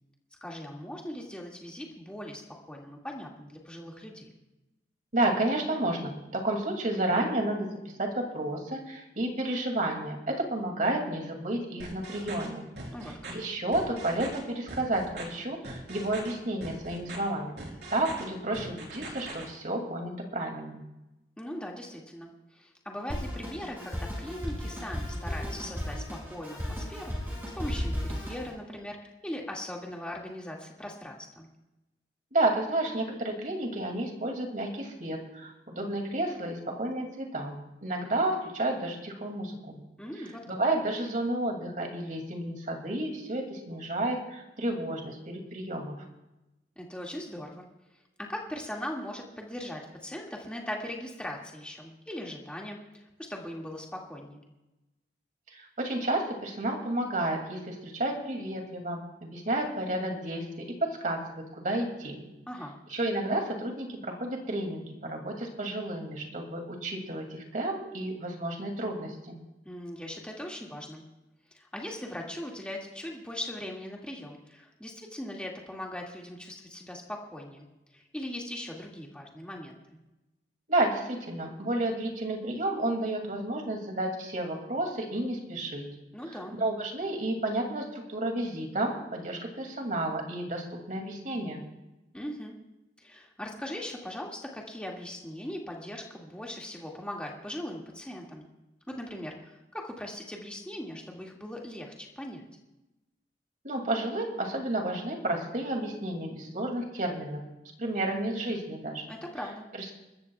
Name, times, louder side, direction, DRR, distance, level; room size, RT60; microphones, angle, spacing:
voice 1, 0.4-2.4 2.7-4.3 12.9-13.1 21.4-29.0 29.2-31.5 40.0-40.5 46.8-47.6 48.2-54.4 62.5-62.8 69.7-71.0 71.5-77.7 77.9-79.8 86.1-86.6 92.1-92.5 93.0-98.5 98.9-102.5 109.1-109.7, left 1 dB, 5° left, -2 dB, 2.2 m, -40 dB
voice 2, 5.1-7.7 8.0-12.7 13.3-17.6 17.9-20.8 32.3-39.8 40.5-46.1 55.5-60.5 60.8-62.2 62.9-69.4 80.7-85.9 86.6-91.6 103.6-107.4 107.8-109.0 109.8-109.9, right 1 dB, 50° right, 2 dB, 2.5 m, -31 dB
sound 1, 11.8-12.5 12.8-13.3 13.7-14.4 14.7-15.2 15.6-16.3 16.6-17.2 17.6-18.2 18.5-19.4, right 2 dB, 70° right, 3.8 m, -41 dB
Drum kit, 23.1-28.5, equal, 10° right, 5.8 m, -35 dB
30.0 x 13.5 x 2.4 m, 1.0 s
head